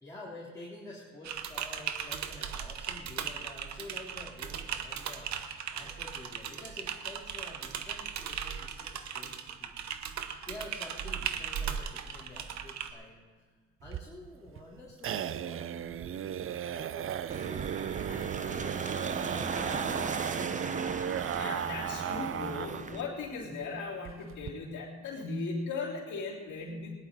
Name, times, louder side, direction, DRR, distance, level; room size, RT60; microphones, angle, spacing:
voice 1, 0.0-5.3 5.7-9.7 10.5-13.2 13.8-17.7 18.1-20.8, left 1 dB, 10° left, -7 dB, 3.6 m, -48 dB
Typing, 1.2-12.9, right 8 dB, 65° right, 1.0 m, -38 dB
sound 1, 13.8-22.9 23.2-23.3 23.6-23.7 24.0-24.5, right 9 dB, 45° right, 0.5 m, -35 dB
sound 2, 17.3-23.0, right 4 dB, 25° right, 0.9 m, -37 dB
voice 2, 21.3-27.0, left 3 dB, 70° left, -7 dB, 3.5 m, -37 dB
18.5 x 11.0 x 4.1 m, 1.5 s
cardioid pair, 90°, 30 cm